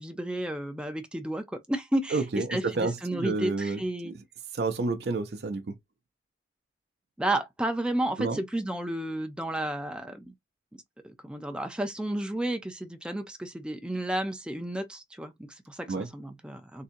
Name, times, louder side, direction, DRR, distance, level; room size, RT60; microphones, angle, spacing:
voice 1, 0.0-2.2 2.5-4.1 7.2-10.3 11.0-16.8, right 1 dB, 5° right, 0.5 m, -32 dB
voice 2, 2.1-4.1 4.5-5.8 8.2-8.4 15.9-16.1, right 3 dB, 65° right, 0.5 m, -30 dB
3.8 x 2.7 x 2.6 m
head